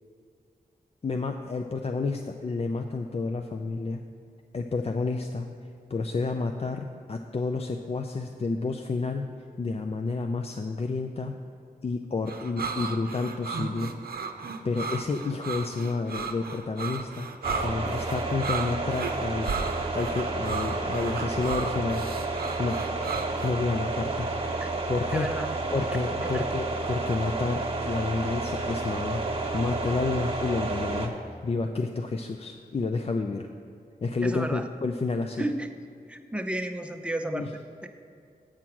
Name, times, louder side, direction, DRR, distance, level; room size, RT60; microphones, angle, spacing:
voice 1, 1.0-4.0 4.5-5.5 5.9-9.3 9.6-11.4 11.8-13.9 14.6-17.3 17.6-19.6 19.9-22.0 22.6-22.8 23.4-24.3 24.9-25.3 25.7-29.2 29.5-31.1 31.4-33.5 34.0-35.4 37.3-37.5, left 3 dB, 40° left, 5 dB, 0.5 m, -30 dB
sound 1, 12.3-23.5, right 5 dB, 70° right, 0.7 m, -35 dB
sound 2, 17.4-31.1, right 2 dB, 40° right, 1.3 m, -31 dB
voice 2, 25.1-25.5 26.2-26.4 34.2-34.7 35.4-35.7 36.1-37.9, right 1 dB, 5° right, 5 dB, 0.7 m, -32 dB
8.8 x 4.6 x 7.1 m, 2.5 s
cardioid pair, 60°, 16 cm